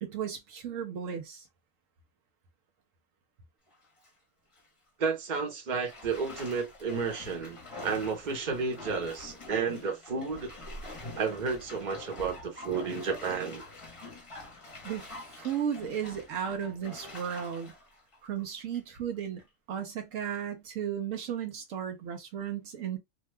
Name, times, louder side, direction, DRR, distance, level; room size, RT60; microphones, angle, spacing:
voice 1, 0.0-1.5 14.8-17.7 18.2-23.0, right 8 dB, 75° right, 1.0 m, -35 dB
Bathtub (filling or washing), 3.7-4.1 4.5-4.7 5.8-19.0 19.4-19.5, left 2 dB, 25° left, 0.8 m, -46 dB
voice 2, 5.0-7.6 7.8-10.5 11.2-13.6, right 5 dB, 40° right, 1.0 m, -32 dB
2.8 x 2.3 x 3.2 m
omnidirectional pair, 1.4 m